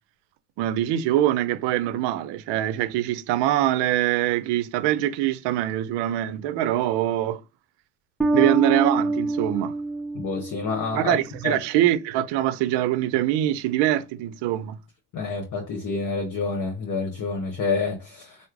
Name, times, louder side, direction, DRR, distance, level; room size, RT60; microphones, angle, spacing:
voice 1, 0.6-7.4 8.3-9.7 10.9-14.8, right 13 dB, 60° right, 0.6 m, -23 dB
Bass guitar, 8.2-11.2, right 2 dB, ahead, 0.7 m, -26 dB
voice 2, 10.1-11.2 11.4-11.6 15.1-18.4, left 4 dB, 40° left, 1.0 m, -28 dB
3.1 x 2.1 x 3.7 m
supercardioid pair, 110°, 47 cm